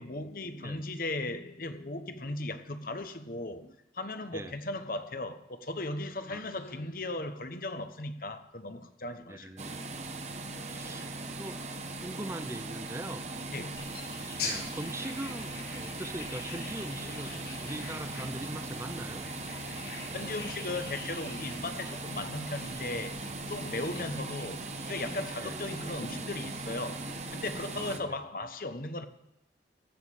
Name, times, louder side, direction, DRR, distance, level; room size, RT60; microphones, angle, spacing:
voice 1, 0.0-9.6 10.5-11.1 13.5-13.8 16.9-17.1 20.1-23.2 23.5-29.0, left 2 dB, 50° left, 1.1 m, -37 dB
voice 2, 9.3-9.8 10.6-11.6 12.0-13.3 14.4-19.2 24.0-24.1 25.4-25.6 27.8-28.2, right 1 dB, 15° right, 0.6 m, -41 dB
sound 1, 9.6-28.0, right 2 dB, 40° right, 1.1 m, -39 dB
sound 2, 13.8-24.0, left 4 dB, 70° left, 5.0 m, -44 dB
15.0 x 6.6 x 8.3 m
head